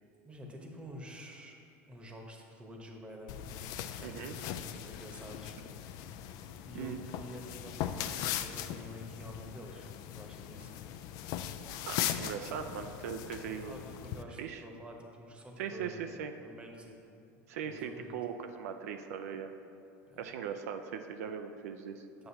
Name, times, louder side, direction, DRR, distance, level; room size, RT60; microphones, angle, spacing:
voice 1, 0.2-1.6 1.9-3.5 4.0-6.3 6.6-10.8 13.7-16.0 16.4-17.0 17.6-18.4 20.1-20.2 22.2-22.3, equal, 15° right, 1 dB, 1.0 m, -49 dB
sound 1, 3.3-14.2, left 10 dB, 55° left, 0.4 m, -39 dB
voice 2, 4.0-4.3 6.7-7.0 11.9-13.7 14.4-14.6 15.6-16.3 17.5-19.5 20.2-22.0, right 7 dB, 85° right, 6 dB, 0.4 m, -39 dB
7.7 x 7.6 x 2.8 m, 2.7 s
supercardioid pair, 120°, 8 cm